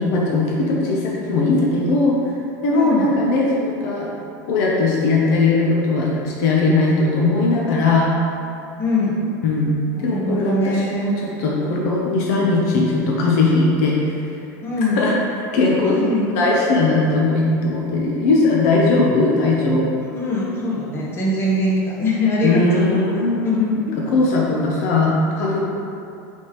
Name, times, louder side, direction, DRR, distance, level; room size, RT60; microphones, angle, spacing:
voice 1, 0.0-2.2 2.6-4.1 4.5-8.1 9.4-14.1 15.0-15.1 15.5-15.9 16.3-19.9 22.4-23.5 24.1-25.6, left 3 dB, 65° left, -3 dB, 0.6 m, -19 dB
voice 2, 2.7-3.1 8.8-9.2 9.9-11.1 14.6-15.0 15.8-16.2 20.0-23.0 23.4-24.0, left 1 dB, 25° left, -6 dB, 0.9 m, -22 dB
4.2 x 3.5 x 3.0 m, 2.6 s
supercardioid pair, 135°, 10 cm